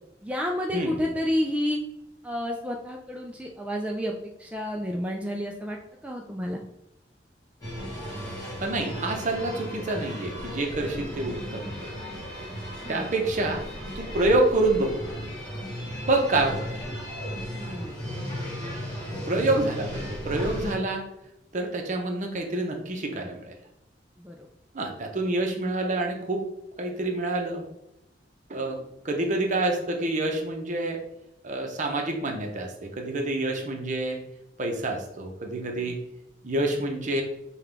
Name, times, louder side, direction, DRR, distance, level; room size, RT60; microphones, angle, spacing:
voice 1, 0.2-1.8 2.2-6.6 12.8-13.0 17.5-18.0 24.2-24.5 35.8-36.0, equal, 10° right, 0 dB, 0.3 m, -30 dB
sound 1, 7.6-20.7, equal, 25° left, 1.4 m, -35 dB
voice 2, 8.6-11.9 12.9-13.6 13.9-15.0 16.0-16.8 19.3-21.0 21.5-23.5 24.7-26.4 26.8-27.7 28.5-31.0 31.4-34.2 34.6-36.0 36.4-37.2, right 2 dB, 45° right, 2 dB, 0.7 m, -27 dB
5.6 x 2.3 x 3.4 m, 0.87 s
head